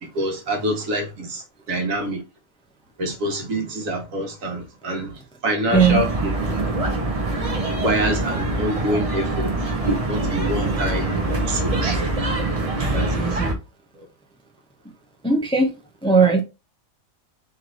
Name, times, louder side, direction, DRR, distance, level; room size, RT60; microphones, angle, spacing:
voice 1, 0.0-2.2 3.0-6.6 7.7-9.5 10.1-11.1 11.5-12.1 12.9-13.4 13.9-14.1, right 1 dB, 85° right, 1.5 m, -26 dB
sound 1, 5.7-13.5, right 2 dB, 30° right, 0.8 m, -24 dB
voice 2, 13.1-13.6 15.2-15.7 16.0-16.4, right 4 dB, 5° left, 0.6 m, -18 dB
3.3 x 3.2 x 3.8 m
omnidirectional pair, 1.4 m